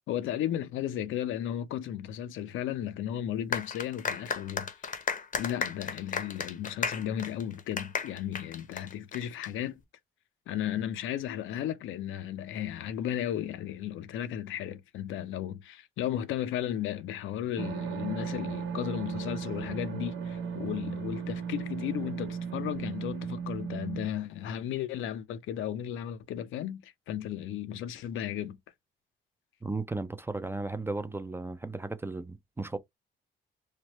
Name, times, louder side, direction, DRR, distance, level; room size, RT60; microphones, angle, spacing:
voice 1, 0.1-4.7 5.3-9.8 10.5-28.6, left 11 dB, 80° left, 0.5 m, -34 dB
sound 1, 3.5-9.5, left 6 dB, 40° left, 0.7 m, -34 dB
sound 2, 17.6-24.1, right 6 dB, 85° right, 0.8 m, -36 dB
voice 2, 29.6-32.8, right 3 dB, 10° right, 0.4 m, -35 dB
3.2 x 2.1 x 2.9 m
cardioid pair, 90°, 20 cm